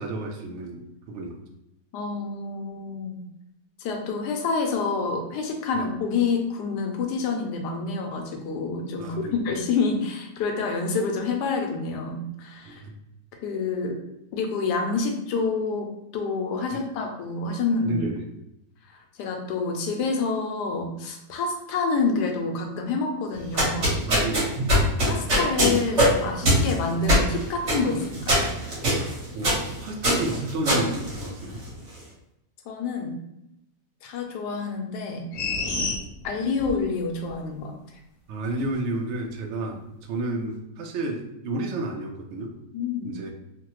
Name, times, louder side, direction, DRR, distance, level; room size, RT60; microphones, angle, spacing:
voice 1, 0.0-1.4 9.0-9.4 12.7-12.9 16.7-16.8 17.8-18.3 24.0-24.5 29.3-31.6 35.8-35.9 38.3-42.5 43.0-43.3, right 2 dB, 75° right, 1 dB, 0.6 m, -31 dB
voice 2, 1.9-3.2 3.8-12.8 13.4-14.0 14.3-18.0 18.9-24.0 25.0-28.5 32.7-33.2 34.0-35.3 36.2-37.7 42.7-43.1, left 4 dB, 85° left, 3 dB, 1.2 m, -28 dB
sound 1, 23.4-31.8, equal, 50° right, 1.3 m, -23 dB
sound 2, 35.3-36.8 37.2-37.3, left 3 dB, 65° left, 0.9 m, -28 dB
3.1 x 2.1 x 2.9 m, 0.85 s
omnidirectional pair, 1.7 m